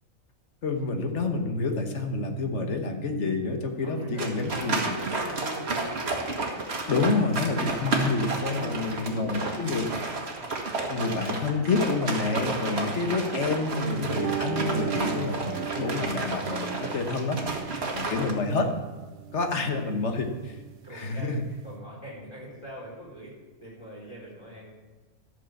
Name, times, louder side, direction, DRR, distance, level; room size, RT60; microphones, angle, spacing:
voice 1, 0.6-5.0 6.9-9.8 10.9-17.4 17.9-18.7 19.3-20.3 20.9-21.4, left 3 dB, 60° left, 5 dB, 1.4 m, -28 dB
Wind instrument woodwind instrument, 2.9-7.9, right 4 dB, 85° right, 1.3 m, -44 dB
voice 2, 3.8-5.9 8.5-9.6 19.4-19.5 20.0-20.3 20.8-23.3 23.6-24.7, equal, 20° left, -3 dB, 4.3 m, -42 dB
sound 1, 4.2-18.3, right 3 dB, 50° right, 1.7 m, -31 dB
sound 2, 14.0-21.7, right 11 dB, 65° right, 0.5 m, -37 dB
12.0 x 6.4 x 7.1 m, 1.3 s
omnidirectional pair, 1.4 m